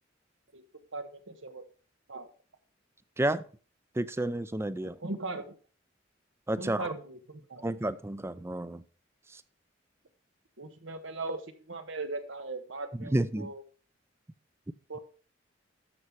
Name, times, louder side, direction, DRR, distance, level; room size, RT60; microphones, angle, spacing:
voice 1, 0.9-1.6 2.1-2.3 5.0-5.6 6.6-7.6 10.6-13.6 14.9-15.0, right 2 dB, 85° right, 1.4 m, -39 dB
voice 2, 4.0-5.0 6.5-6.9 7.6-8.8 13.0-13.5, right 1 dB, 15° right, 0.5 m, -30 dB
13.0 x 5.6 x 4.7 m
head